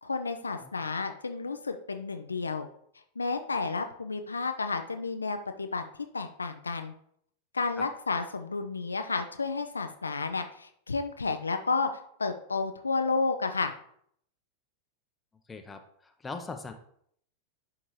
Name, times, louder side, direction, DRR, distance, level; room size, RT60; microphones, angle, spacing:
voice 1, 0.0-2.7 3.2-5.8 6.1-6.9 7.5-11.9 12.2-13.7, left 4 dB, 75° left, 7 dB, 0.4 m, -31 dB
voice 2, 15.5-16.7, left 4 dB, 15° left, 6 dB, 0.7 m, -40 dB
11.0 x 3.6 x 3.1 m, 0.66 s
figure-of-eight pair, 90°, 0 cm